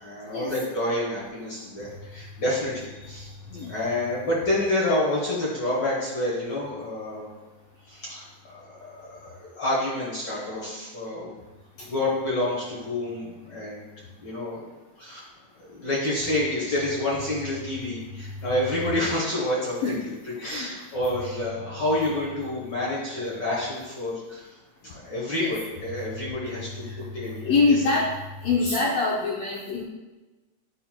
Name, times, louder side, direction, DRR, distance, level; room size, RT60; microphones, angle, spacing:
voice 1, 0.0-3.3 3.7-7.3 7.9-11.3 11.8-13.9 14.2-14.6 15.0-15.2 15.6-20.0 20.4-24.5 24.8-27.8, left 1 dB, 60° left, -5 dB, 1.1 m, -28 dB
voice 2, 27.4-28.2 28.4-29.8, left 3 dB, 90° left, -3 dB, 1.4 m, -24 dB
10.0 x 4.3 x 2.2 m, 1.2 s
omnidirectional pair, 3.7 m